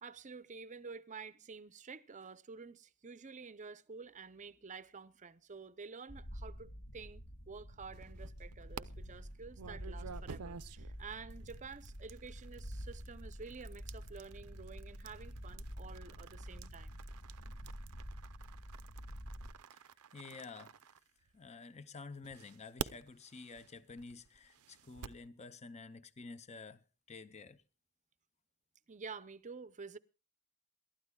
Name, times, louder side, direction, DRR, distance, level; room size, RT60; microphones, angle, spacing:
voice 1, 0.0-17.0 28.9-30.0, right 5 dB, 35° right, 0.6 m, -50 dB
sound 1, 6.1-19.5, equal, 55° left, 1.8 m, -48 dB
sound 2, 7.9-8.8 9.5-21.6 22.2-25.3, right 6 dB, 80° right, 0.6 m, -50 dB
voice 2, 19.7-20.8 21.3-27.6, left 4 dB, 30° left, 0.6 m, -51 dB
28.0 x 12.5 x 2.3 m
head